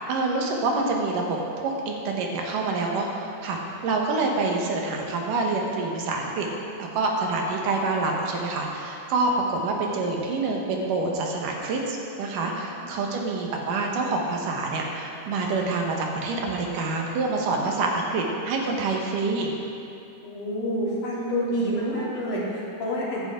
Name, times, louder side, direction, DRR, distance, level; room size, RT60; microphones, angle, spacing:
voice 1, 0.1-1.4 1.6-6.5 6.9-19.5 21.6-22.1, right 3 dB, 85° right, 0 dB, 3.0 m, -27 dB
voice 2, 12.4-13.1 20.2-23.2, equal, 70° left, -8 dB, 4.5 m, -29 dB
15.5 x 11.0 x 3.8 m, 2.7 s
omnidirectional pair, 3.7 m